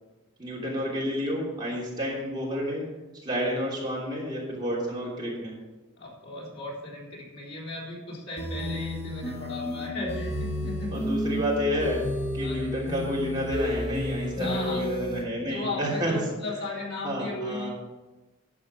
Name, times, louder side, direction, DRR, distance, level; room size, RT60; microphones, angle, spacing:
voice 1, 0.4-2.8 3.2-5.5 10.9-12.0 12.3-16.1 17.0-17.7, equal, 20° right, -5 dB, 3.1 m, -30 dB
voice 2, 6.0-10.9 12.4-12.7 14.3-14.9 15.4-17.7, left 2 dB, 85° left, -4 dB, 3.8 m, -36 dB
sound 1, 8.4-15.2, equal, 30° left, 2.6 m, -32 dB
11.0 x 7.4 x 5.6 m, 1.1 s
head